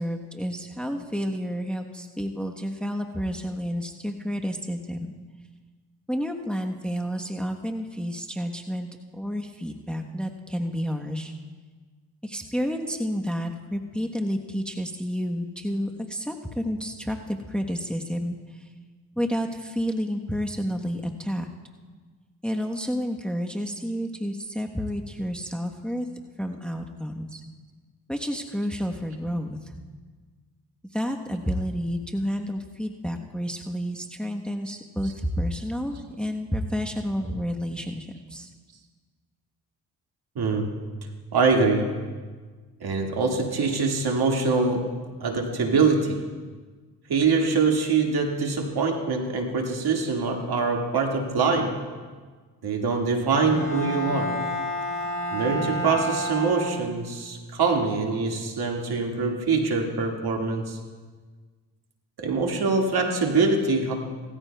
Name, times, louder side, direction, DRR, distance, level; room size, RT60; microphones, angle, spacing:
voice 1, 0.0-5.1 6.1-8.9 9.1-11.3 12.2-18.6 19.2-21.5 22.4-26.1 26.4-27.4 28.1-29.8 30.9-38.5, equal, ahead, 3 dB, 1.0 m, -30 dB
voice 2, 40.4-40.7 41.3-41.9 42.8-44.9 45.2-46.2 47.1-51.7 52.6-54.3 55.3-60.8 62.2-63.9, right 4 dB, 55° right, 2 dB, 2.0 m, -24 dB
Bowed string instrument, 53.5-57.2, equal, 45° left, 3.4 m, -30 dB
18.0 x 14.0 x 2.3 m, 1.5 s
supercardioid pair, 55°, 45 cm